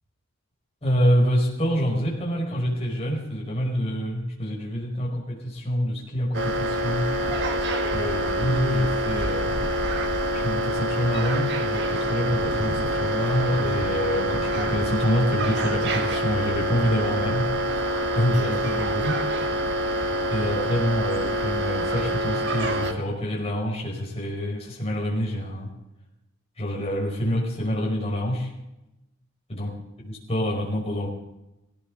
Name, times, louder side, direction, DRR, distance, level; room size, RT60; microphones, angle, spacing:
voice 1, 0.8-7.1 7.9-9.6 10.3-17.5 18.1-19.2 20.3-25.7 26.6-28.5 29.5-29.7 30.0-31.1, equal, 30° left, -2 dB, 5.1 m, -26 dB
sound 1, 6.3-22.9, equal, 60° right, 1.9 m, -26 dB
17.5 x 17.0 x 3.9 m, 0.92 s
head